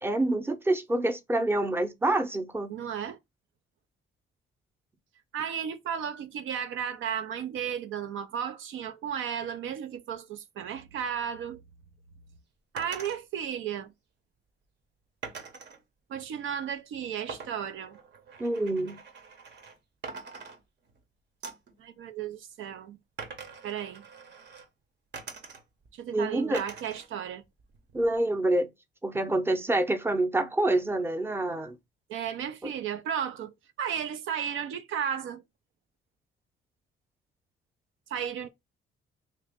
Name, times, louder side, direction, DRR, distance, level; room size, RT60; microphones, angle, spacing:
voice 1, 0.0-2.7 18.4-19.0 26.1-26.6 27.9-28.7 29.0-31.8 32.6-32.7, right 2 dB, 10° right, 0.7 m, -27 dB
voice 2, 2.7-3.2 5.3-11.6 12.7-13.9 16.1-18.0 21.8-23.0 23.6-24.0 25.9-27.4 32.1-35.4 38.1-38.5, right 8 dB, 80° right, 0.6 m, -34 dB
sound 1, 12.8-13.2 15.2-15.8 17.3-19.8 20.0-21.0 21.4-21.7 23.2-24.7 25.1-25.9 26.5-27.1 27.4-28.2, right 5 dB, 60° right, 1.1 m, -44 dB
3.0 x 2.9 x 3.5 m
cardioid pair, 90°, 20 cm